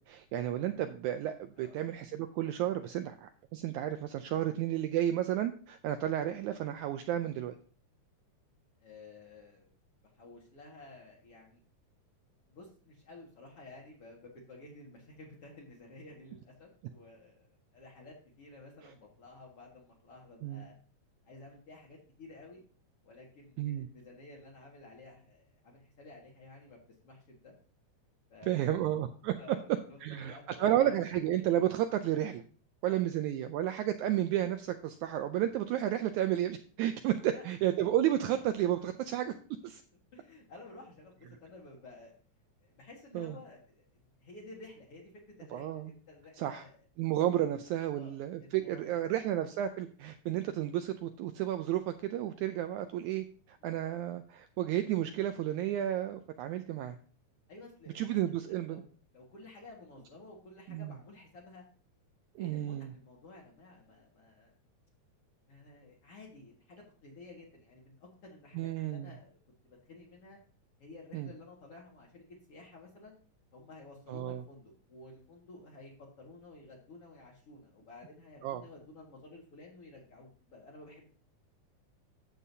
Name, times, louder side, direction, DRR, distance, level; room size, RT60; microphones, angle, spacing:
voice 1, 0.1-7.5 20.4-20.7 23.6-23.9 28.4-29.3 30.0-32.4 32.8-39.3 39.6-39.8 43.1-43.4 45.5-45.9 46.4-46.6 47.0-57.0 58.0-58.8 60.7-60.9 62.4-62.9 68.6-69.1 71.1-71.3 74.1-74.4 78.4-78.6, right 12 dB, 80° right, 8 dB, 1.8 m, -32 dB
voice 2, 8.8-9.7 10.0-11.6 12.5-20.7 21.2-22.6 23.0-26.8 27.0-27.5 28.3-29.0 29.4-31.0 32.9-33.0 37.2-37.4 38.6-38.9 40.1-42.1 42.6-45.1 45.4-46.8 47.3-47.4 47.9-48.1 48.4-49.0 53.6-53.8 57.5-58.8 59.1-61.6 62.4-64.5 65.5-69.4 69.6-70.4 70.8-73.2 73.5-81.1, left 2 dB, 50° left, -3 dB, 2.5 m, -53 dB
12.0 x 7.5 x 2.7 m, 0.41 s
omnidirectional pair, 3.8 m